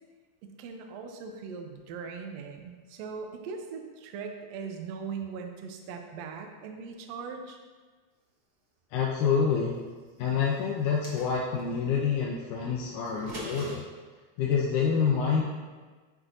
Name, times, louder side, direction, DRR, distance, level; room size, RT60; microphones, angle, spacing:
voice 1, 0.4-7.6, right 5 dB, 75° right, 4 dB, 1.6 m, -40 dB
voice 2, 8.9-9.7 10.2-13.8 14.4-15.4, left 6 dB, 85° left, -2 dB, 2.1 m, -27 dB
sound 1, 10.8-11.7 13.1-13.8, equal, 55° right, 1.1 m, -41 dB
9.8 x 4.5 x 2.6 m, 1.4 s
omnidirectional pair, 3.5 m